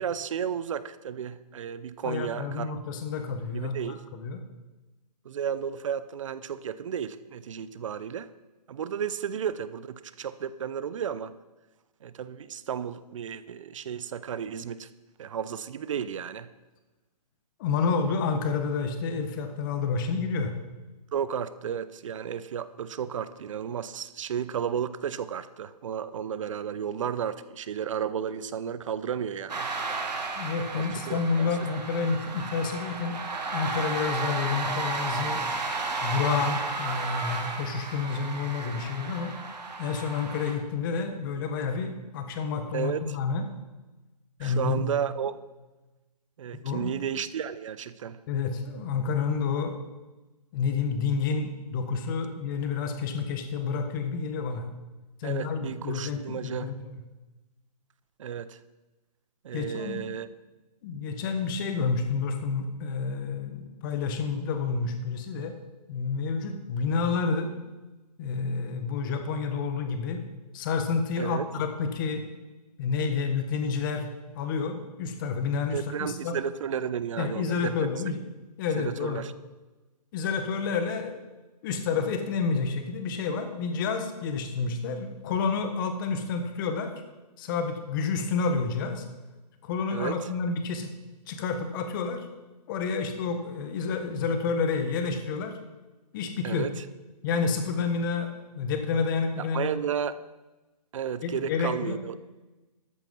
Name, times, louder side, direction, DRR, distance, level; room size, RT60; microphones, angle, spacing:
voice 1, 0.0-2.7 3.5-4.0 5.2-8.3 8.7-11.3 12.0-14.9 15.2-16.5 21.1-29.7 30.7-31.5 42.7-43.2 44.4-45.4 46.4-48.2 55.2-56.7 58.2-58.6 59.4-60.3 71.2-71.5 75.7-77.7 78.7-79.3 89.9-90.2 96.4-96.8 99.4-100.2 100.9-102.1, right 8 dB, 50° right, 15 dB, 0.7 m, -33 dB
voice 2, 2.0-4.4 17.6-20.5 30.3-33.2 33.5-35.4 36.0-39.3 39.8-43.5 44.4-44.8 46.5-46.9 48.3-49.8 50.5-54.6 55.2-56.9 59.5-60.0 60.8-65.6 65.9-67.5 68.2-70.2 70.5-72.3 72.8-74.1 74.3-76.4 77.2-78.2 78.6-79.2 80.1-81.2 81.6-86.9 87.4-89.0 89.6-90.9 91.3-92.3 92.7-95.5 96.1-96.7 97.2-99.7 101.2-102.0, left 5 dB, 30° left, 6 dB, 1.4 m, -29 dB
sound 1, 29.5-40.5, right 3 dB, 80° right, 2.2 m, -33 dB
13.0 x 7.4 x 5.4 m, 1.1 s
hypercardioid pair, 150°, 21 cm